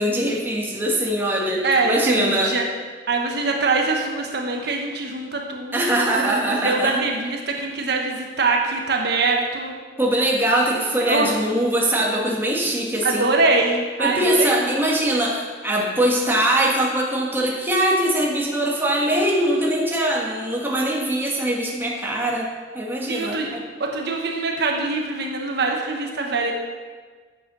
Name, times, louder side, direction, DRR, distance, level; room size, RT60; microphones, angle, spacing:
voice 1, 0.0-2.5 5.7-7.0 7.6-7.7 10.0-13.3 14.0-22.5 22.7-23.6, right 1 dB, 10° right, -3 dB, 1.6 m, -22 dB
voice 2, 1.6-2.6 3.1-9.7 10.7-11.3 13.0-14.7 23.1-23.5 23.8-26.5, right 3 dB, 65° right, 1 dB, 1.2 m, -23 dB
8.4 x 7.6 x 6.2 m, 1.5 s
head